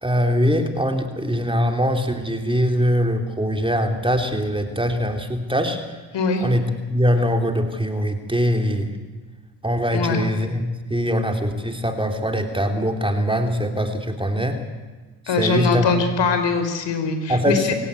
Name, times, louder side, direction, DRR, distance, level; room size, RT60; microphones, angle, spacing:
voice 1, 0.0-5.8 6.4-8.9 9.6-10.6 10.9-14.6 15.3-15.9 17.3-17.7, equal, 10° right, 4 dB, 3.4 m, -22 dB
voice 2, 6.1-6.4 9.9-10.2 15.3-17.6, left 4 dB, 55° left, 7 dB, 5.0 m, -22 dB
27.5 x 17.0 x 8.5 m, 1.3 s
hypercardioid pair, 65°, 50 cm